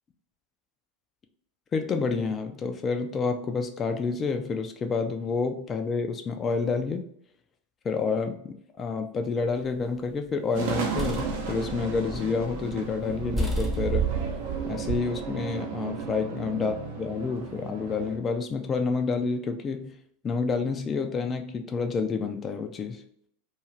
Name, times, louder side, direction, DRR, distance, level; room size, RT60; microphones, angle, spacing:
voice 1, 1.7-7.1 7.8-14.1 14.7-20.0 20.2-23.0, left 4 dB, 25° left, 6 dB, 0.3 m, -29 dB
sound 1, 9.5-10.1 10.6-12.7 13.0-13.1 13.3-14.9, left 1 dB, 10° right, 0.7 m, -34 dB
sound 2, 10.5-18.2, right 7 dB, 60° right, 0.6 m, -32 dB
2.4 x 2.3 x 3.1 m, 0.68 s
figure-of-eight pair, 90°, 0 cm